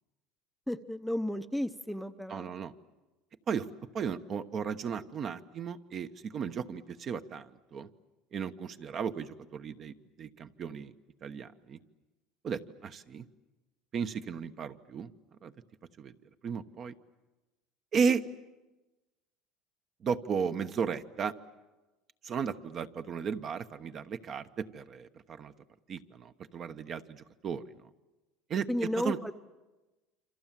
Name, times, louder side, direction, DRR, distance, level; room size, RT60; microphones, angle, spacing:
voice 1, 0.7-2.5 28.7-29.3, left 1 dB, ahead, 10 dB, 0.8 m, -33 dB
voice 2, 2.3-2.7 3.5-3.7 3.9-7.9 8.3-10.9 11.2-11.8 12.4-13.2 13.9-15.1 15.4-15.5 16.0-16.1 16.4-16.9 17.9-18.2 20.0-21.3 22.2-25.5 25.9-27.6 28.5-29.2, right 6 dB, 40° right, 9 dB, 1.1 m, -35 dB
28.0 x 26.5 x 7.5 m, 1.1 s
cardioid pair, 130°, 0 cm